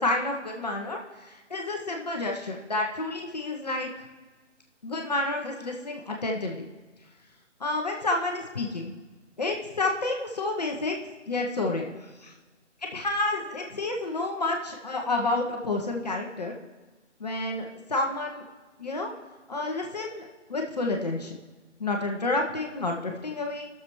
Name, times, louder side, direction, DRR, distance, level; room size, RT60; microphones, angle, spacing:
voice 1, 0.0-3.9 4.8-6.7 7.6-8.9 9.4-11.0 11.3-12.3 12.9-16.5 17.2-18.4 18.8-19.1 19.5-21.4 21.8-23.7, left 2 dB, 35° left, 1 dB, 0.8 m, -30 dB
19.0 x 6.8 x 3.1 m, 1.3 s
figure-of-eight pair, 160°, 37 cm